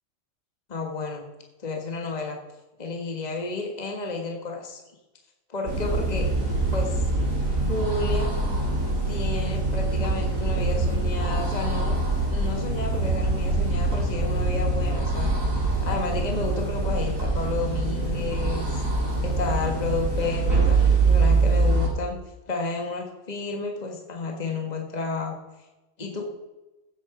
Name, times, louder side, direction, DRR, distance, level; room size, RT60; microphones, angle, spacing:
voice 1, 0.7-1.2 1.6-2.4 2.8-4.8 5.5-6.3 6.7-7.0 7.7-8.3 9.1-12.0 12.3-15.3 15.8-18.8 19.2-22.2 22.5-25.4 26.0-26.3, left 3 dB, 30° left, 2 dB, 1.5 m, -31 dB
sound 1, 5.7-21.9, right 3 dB, 70° right, 3.9 m, -24 dB
15.5 x 8.3 x 4.8 m, 1.1 s
omnidirectional pair, 1.4 m